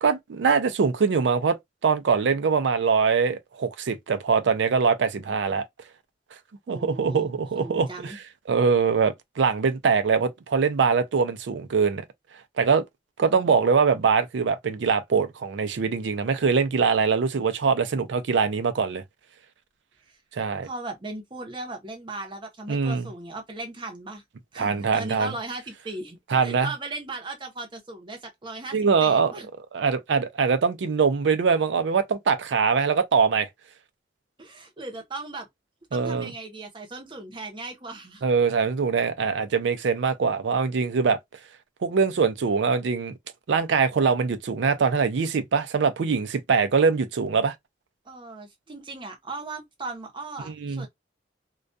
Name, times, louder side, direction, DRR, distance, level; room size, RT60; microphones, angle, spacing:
voice 1, 0.0-1.6 1.8-5.6 6.7-8.1 8.5-12.0 12.6-12.8 13.2-19.0 20.3-20.7 22.7-23.1 24.6-25.3 26.3-26.7 28.7-29.3 29.7-33.5 35.9-36.3 38.2-41.2 41.8-43.1 43.5-47.6 50.5-50.8, right 5 dB, 70° right, 0.4 m, -23 dB
voice 2, 6.7-7.3 7.6-8.2 13.2-13.6 20.1-20.2 20.6-24.2 24.5-29.5 34.4-35.5 35.9-38.2 48.1-50.9, right 2 dB, 25° right, 0.7 m, -37 dB
2.3 x 2.2 x 2.5 m
head